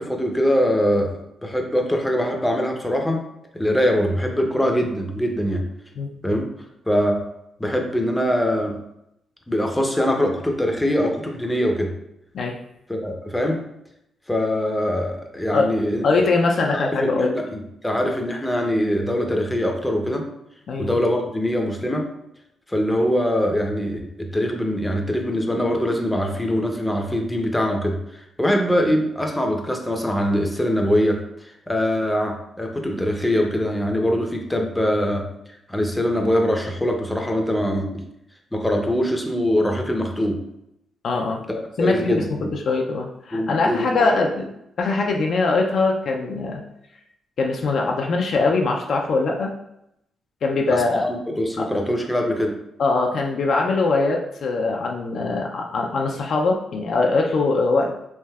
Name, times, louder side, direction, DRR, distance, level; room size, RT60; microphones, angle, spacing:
voice 1, 0.0-3.2 3.5-5.6 6.2-6.5 6.9-7.3 7.6-8.8 9.5-11.9 12.9-13.6 14.3-16.1 16.7-20.3 20.8-22.1 22.7-35.3 35.7-38.0 38.5-40.4 41.5-42.5 43.3-43.9 50.7-52.6, equal, 10° left, 2 dB, 0.5 m, -23 dB
voice 2, 16.0-17.4 20.7-20.9 41.0-41.4 41.8-42.2 42.7-44.5 44.8-46.6 47.4-49.5 50.4-51.0 51.6-51.7 52.8-57.9, left 3 dB, 65° left, 1 dB, 0.4 m, -22 dB
3.2 x 2.6 x 2.3 m, 0.81 s
cardioid pair, 70°, 0 cm